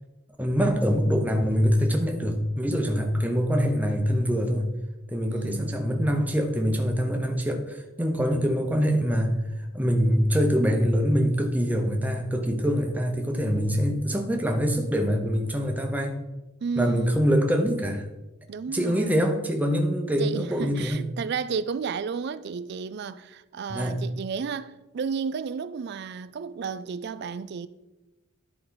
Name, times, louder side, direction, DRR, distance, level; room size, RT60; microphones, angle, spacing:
voice 1, 0.4-4.7 5.1-9.4 9.7-16.2 16.8-18.1 18.7-21.0 23.7-24.0, equal, 10° right, 0.7 m, -24 dB
voice 2, 5.3-5.7 16.6-17.3 18.5-19.2 20.2-27.7, right 6 dB, 55° right, 0.3 m, -32 dB
11.0 x 4.6 x 3.9 m
head